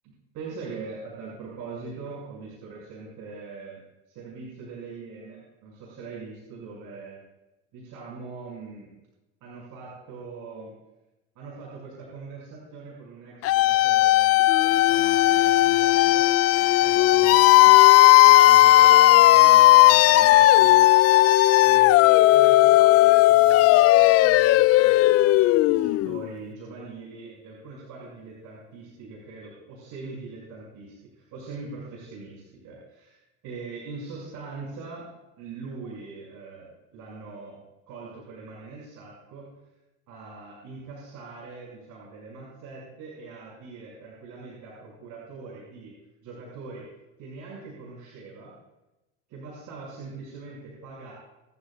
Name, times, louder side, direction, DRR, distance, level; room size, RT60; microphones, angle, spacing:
voice 1, 0.3-3.8 4.1-7.2 7.7-8.9 9.4-10.7 11.3-17.8 18.2-20.9 21.6-25.4 25.7-35.1 35.4-37.6 37.9-39.5 40.1-45.9 46.2-46.9 47.2-48.5 49.3-51.1, right 4 dB, 55° right, -5 dB, 6.1 m, -42 dB
sound 1, 13.4-26.3, left 16 dB, 40° left, 0.5 m, -16 dB
26.5 x 13.0 x 2.4 m, 1.0 s
supercardioid pair, 105°, 37 cm